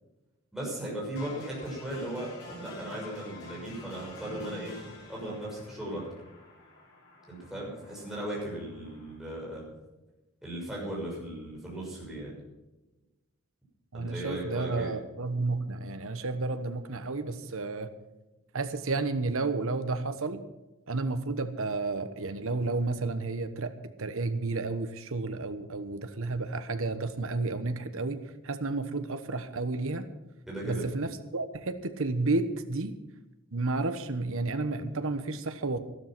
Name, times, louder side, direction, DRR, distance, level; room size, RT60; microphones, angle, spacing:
voice 1, 0.5-6.1 7.3-9.6 10.4-12.3 13.9-14.9 30.5-30.8, right 1 dB, ahead, -5 dB, 6.3 m, -37 dB
sound 1, 1.2-9.2, left 2 dB, 55° left, 6.1 m, -48 dB
voice 2, 13.9-17.9 18.5-20.4 20.9-30.0 30.6-33.0 33.5-35.8, right 3 dB, 65° right, 10 dB, 1.2 m, -31 dB
12.5 x 12.5 x 6.0 m, 1.1 s
head